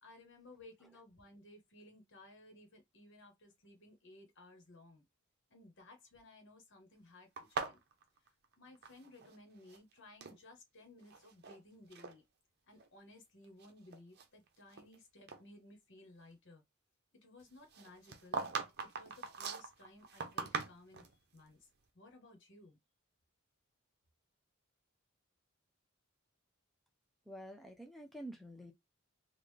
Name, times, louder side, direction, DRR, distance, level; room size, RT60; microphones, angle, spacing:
voice 1, 0.0-5.0 5.5-7.8 8.6-12.2 12.7-16.6 17.2-21.1 21.3-21.7 21.9-22.8, left 2 dB, 60° left, 1.2 m, -58 dB
sound 1, 7.4-9.4 9.6-10.4 11.0-11.6 11.9-12.1 12.8-12.9 13.4-15.0 15.3-15.4 17.7-21.1, right 5 dB, 50° right, 0.7 m, -42 dB
voice 2, 27.3-28.7, right 1 dB, ahead, 0.5 m, -48 dB
3.8 x 2.4 x 3.2 m
head